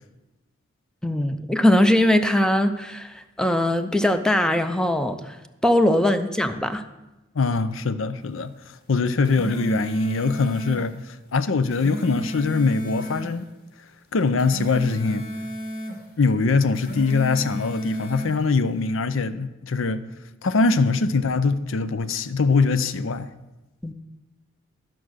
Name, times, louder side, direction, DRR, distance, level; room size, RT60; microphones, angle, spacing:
voice 1, 1.0-5.3 5.6-6.8 23.8-23.9, left 1 dB, 5° left, 0.5 m, -21 dB
voice 2, 7.3-13.5 14.1-15.2 16.2-20.0 20.4-23.3, left 4 dB, 70° left, 0.6 m, -23 dB
sound 1, 9.0-10.9 11.5-13.3 14.2-16.0 16.6-18.4, equal, 50° left, 2.1 m, -33 dB
12.5 x 6.1 x 6.3 m
head